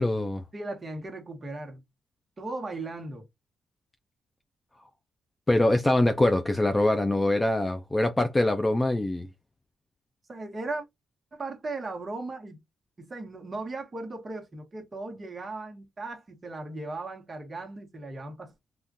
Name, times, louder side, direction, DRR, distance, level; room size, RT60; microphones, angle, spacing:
voice 1, 0.0-0.4 5.5-9.3, left 1 dB, 15° left, 0.4 m, -24 dB
voice 2, 0.5-1.8 2.4-3.3 10.3-10.8 11.3-12.6 13.0-18.5, right 2 dB, 25° right, 1.1 m, -37 dB
3.6 x 2.4 x 2.6 m
wide cardioid pair, 160°, 0 cm